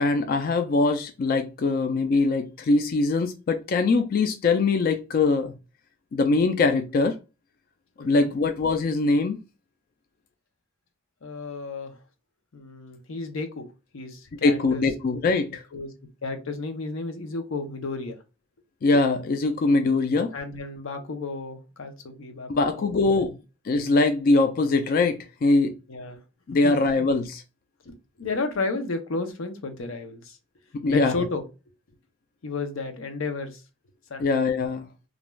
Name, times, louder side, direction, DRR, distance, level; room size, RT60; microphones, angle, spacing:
voice 1, 0.0-5.5 6.1-7.2 8.0-9.4 14.4-15.6 18.8-20.3 22.5-23.3 23.6-25.7 26.5-27.4 30.8-31.2 34.2-34.9, left 3 dB, 45° left, 0.3 m, -22 dB
voice 2, 8.0-8.3 11.2-11.9 12.5-13.7 13.9-14.8 15.7-15.9 16.2-18.2 20.3-22.5 22.8-23.3 25.9-26.2 26.6-26.8 27.9-30.4 30.9-31.4 32.4-33.6 34.1-34.3, left 3 dB, 90° left, 0.6 m, -32 dB
2.4 x 2.2 x 3.1 m
head